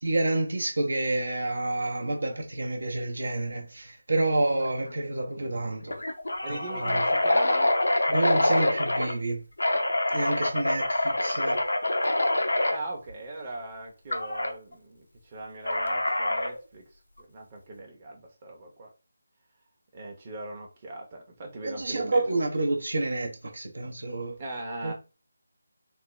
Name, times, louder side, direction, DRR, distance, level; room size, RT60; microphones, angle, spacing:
voice 1, 0.0-6.0 6.5-7.0 8.1-9.4 10.1-11.6 21.6-24.4 24.8-24.9, right 2 dB, 65° right, 0.8 m, -29 dB
sound 1, 4.6-4.9 5.2-5.3 5.9-9.1 9.6-12.8 14.1-14.5 15.7-16.6, left 1 dB, 75° left, 0.6 m, -25 dB
voice 2, 6.4-7.7 12.7-16.8 17.2-18.9 19.9-22.5 24.4-24.9, right 2 dB, 30° right, 0.8 m, -39 dB
3.4 x 2.2 x 3.1 m
figure-of-eight pair, 160°, 0 cm